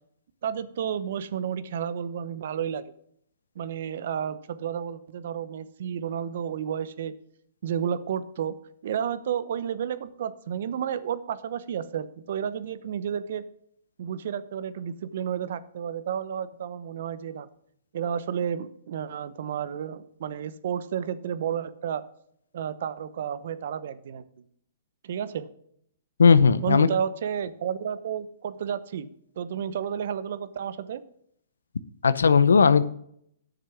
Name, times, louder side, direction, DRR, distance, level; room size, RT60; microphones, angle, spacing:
voice 1, 0.4-2.9 3.6-7.1 7.6-8.5 8.8-13.5 14.0-17.5 17.9-22.0 22.5-24.4 25.0-25.5 26.6-31.0, right 8 dB, 60° right, 14 dB, 0.9 m, -31 dB
voice 2, 26.2-26.9 32.0-32.8, left 5 dB, 85° left, 15 dB, 0.7 m, -17 dB
9.9 x 6.6 x 5.9 m, 0.68 s
hypercardioid pair, 130°, 0 cm